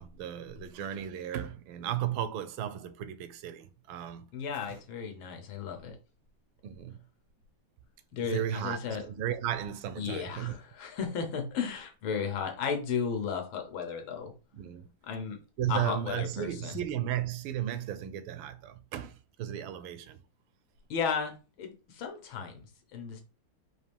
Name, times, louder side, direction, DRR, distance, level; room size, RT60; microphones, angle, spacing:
voice 1, 0.0-4.3 4.6-4.8 6.6-7.0 8.2-10.6 14.5-14.9 15.6-20.2, right 11 dB, 85° right, 1.4 m, -35 dB
voice 2, 4.3-6.0 8.1-9.0 10.0-14.3 15.0-15.4 15.7-16.8 20.9-23.2, left 6 dB, 85° left, 1.7 m, -34 dB
4.6 x 2.5 x 3.4 m
omnidirectional pair, 2.2 m